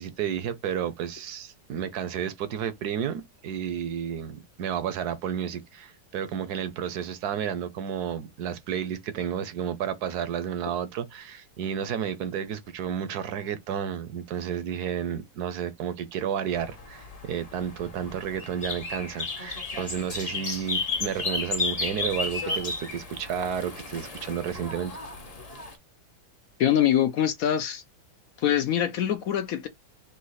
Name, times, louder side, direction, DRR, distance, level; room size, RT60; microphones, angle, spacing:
voice 1, 0.0-24.9, right 8 dB, 75° right, 1.1 m, -31 dB
sound 1, 16.5-25.7, left 4 dB, 30° left, 0.8 m, -33 dB
voice 2, 26.6-27.8 28.4-29.7, left 10 dB, 70° left, 0.9 m, -24 dB
4.1 x 2.7 x 4.0 m
omnidirectional pair, 1.8 m